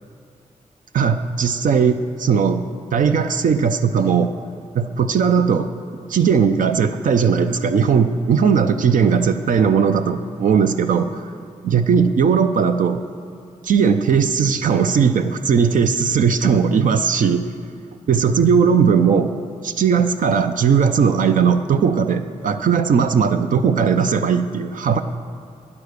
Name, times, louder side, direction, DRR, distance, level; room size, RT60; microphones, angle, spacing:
voice 1, 0.9-2.7 2.9-4.3 4.7-5.7 6.1-11.3 11.6-13.0 13.6-17.5 18.1-19.3 19.6-25.0, right 6 dB, 85° right, 8 dB, 0.5 m, -18 dB
11.5 x 9.8 x 6.6 m, 2.5 s
wide cardioid pair, 120°, 13 cm